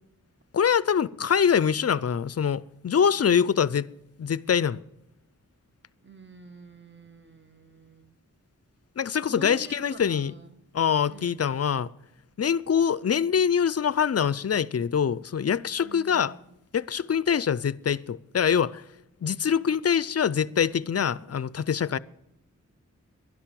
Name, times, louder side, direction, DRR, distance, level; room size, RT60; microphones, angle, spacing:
voice 1, 0.5-3.9 4.2-4.8 9.0-10.3 10.7-11.9 12.4-16.4 16.7-18.8 19.2-22.0, left 7 dB, 50° left, 0.5 m, -24 dB
voice 2, 6.0-8.1 9.3-10.6 11.1-11.4 15.8-16.4, right 1 dB, 35° right, 1.3 m, -45 dB
11.5 x 11.0 x 7.5 m
wide cardioid pair, 65°, 32 cm